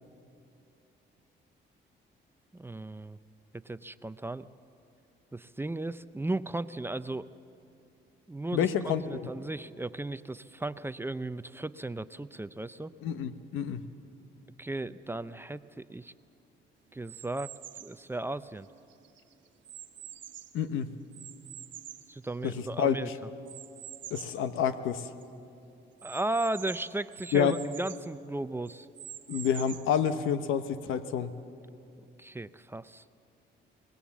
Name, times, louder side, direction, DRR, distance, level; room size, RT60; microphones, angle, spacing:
voice 1, 2.5-3.2 3.6-4.5 5.3-7.3 8.3-12.9 14.6-16.1 16.9-17.5 17.8-18.7 22.1-23.1 26.0-28.9 32.2-33.0, right 2 dB, 10° right, 13 dB, 0.5 m, -35 dB
voice 2, 8.5-9.3 13.0-13.8 20.5-20.9 22.4-23.0 24.1-25.1 27.3-27.6 29.3-31.3, left 8 dB, 85° left, 11 dB, 1.0 m, -28 dB
sound 1, 17.0-18.0 18.6-20.6 21.1-22.8 23.5-24.4 24.9-25.0 25.2-25.3 26.0-28.1 28.7-30.0, right 11 dB, 70° right, 1.2 m, -46 dB
24.5 x 20.0 x 7.2 m, 2.6 s
cardioid pair, 90°, 20 cm